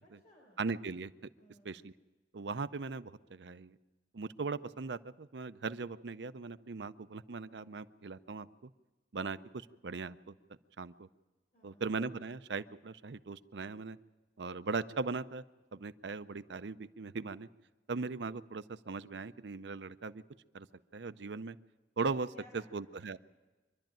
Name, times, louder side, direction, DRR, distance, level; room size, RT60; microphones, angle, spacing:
voice 1, 0.0-0.6 1.4-1.8 11.5-11.9 22.3-22.8 23.1-23.2, left 2 dB, 45° left, -2 dB, 4.6 m, -61 dB
voice 2, 0.6-1.3 1.6-1.9 2.3-3.7 4.1-8.7 9.1-10.3 10.8-11.1 11.6-14.0 14.4-15.4 15.7-17.5 17.9-20.2 20.5-20.7 20.9-21.6 22.0-23.2, right 4 dB, 80° right, 13 dB, 0.6 m, -39 dB
24.5 x 12.0 x 9.0 m, 1.2 s
head